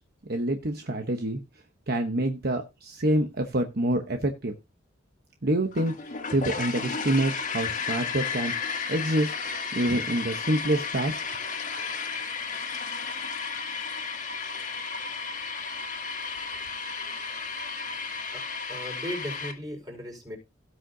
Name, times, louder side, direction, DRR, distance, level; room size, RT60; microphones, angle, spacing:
voice 1, 0.3-1.4 1.9-4.5 5.4-8.5 8.9-9.3 9.7-11.2, right 1 dB, 55° right, 4 dB, 1.1 m, -27 dB
sound 1, 5.7-19.5, left 5 dB, 40° left, 1.9 m, -33 dB
voice 2, 18.7-20.4, equal, 20° right, 1 dB, 5.0 m, -36 dB
17.0 x 6.5 x 2.8 m, 0.25 s
head